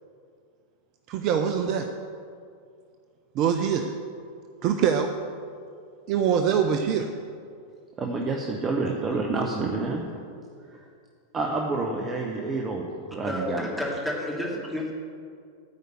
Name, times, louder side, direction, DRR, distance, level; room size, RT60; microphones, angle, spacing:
voice 1, 1.1-1.9 3.3-3.9 4.6-5.1 6.1-7.1, right 7 dB, 40° right, 6 dB, 0.6 m, -23 dB
voice 2, 8.0-10.1 10.7-10.8 11.3-13.7, right 3 dB, 25° right, 1 dB, 1.0 m, -28 dB
voice 3, 13.2-14.9, left 1 dB, ahead, -3 dB, 2.5 m, -30 dB
13.0 x 5.1 x 7.9 m, 2.3 s
figure-of-eight pair, 90°, 0 cm